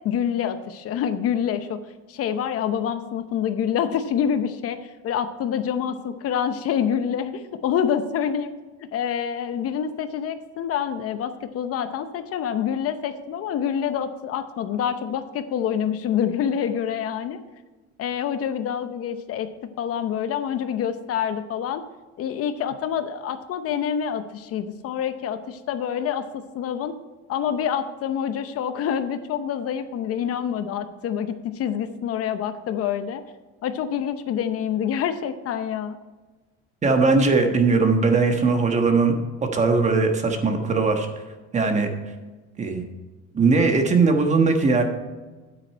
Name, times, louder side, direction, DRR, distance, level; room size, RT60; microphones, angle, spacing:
voice 1, 0.0-1.8 2.1-8.5 8.9-17.4 18.0-19.5 19.8-21.8 22.2-26.9 27.3-33.2 33.6-36.0, left 8 dB, 50° left, 10 dB, 0.8 m, -26 dB
voice 2, 36.8-39.1 39.5-41.1 41.5-41.9 42.6-42.8 43.3-44.8, right 4 dB, 25° right, 5 dB, 1.3 m, -19 dB
9.6 x 8.6 x 4.5 m, 1.3 s
cardioid pair, 140°, 29 cm